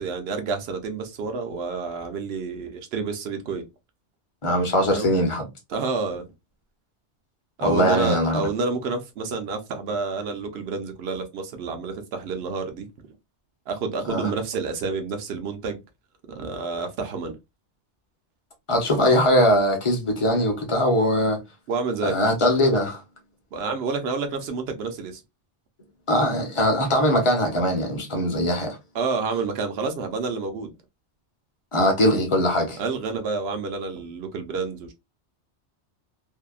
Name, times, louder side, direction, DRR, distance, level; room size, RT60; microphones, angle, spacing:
voice 1, 0.0-3.6 4.9-5.1 5.7-6.3 7.6-12.9 13.7-15.8 16.3-17.4 21.7-22.2 23.5-25.2 28.9-30.7 32.8-34.9, right 4 dB, 70° right, 0.8 m, -29 dB
voice 2, 4.4-5.4 7.6-8.4 14.1-14.3 18.7-21.4 22.0-23.0 26.1-28.8 31.7-32.8, equal, 30° left, 0.7 m, -21 dB
2.7 x 2.1 x 2.3 m
omnidirectional pair, 1.2 m